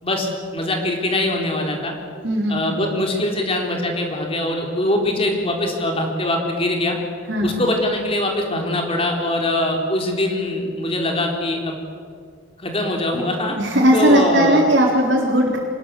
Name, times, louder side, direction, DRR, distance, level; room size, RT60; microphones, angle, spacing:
voice 1, 0.0-1.9 2.5-7.0 7.4-11.8 12.6-13.6 13.9-14.6, left 1 dB, 30° left, 1 dB, 4.0 m, -22 dB
voice 2, 2.2-2.6 7.3-7.6 13.6-15.6, right 1 dB, 55° right, -4 dB, 4.2 m, -17 dB
25.5 x 21.5 x 8.5 m, 2.1 s
head